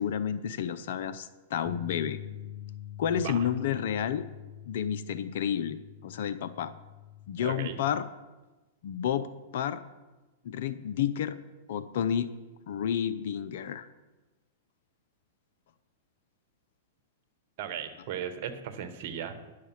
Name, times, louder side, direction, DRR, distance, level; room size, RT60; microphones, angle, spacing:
voice 1, 0.0-2.2 3.0-4.3 4.7-5.8 6.0-6.7 7.3-8.0 8.8-9.8 10.4-11.4 11.7-12.3 12.7-13.9, left 9 dB, 65° left, 14 dB, 0.6 m, -30 dB
sound 1, 1.7-7.9, left 12 dB, 20° left, 1.0 m, -45 dB
voice 2, 3.1-3.5 7.4-7.8 17.6-19.5, right 8 dB, 55° right, 10 dB, 1.1 m, -37 dB
10.5 x 6.6 x 5.8 m, 1.1 s
hypercardioid pair, 120°, 0 cm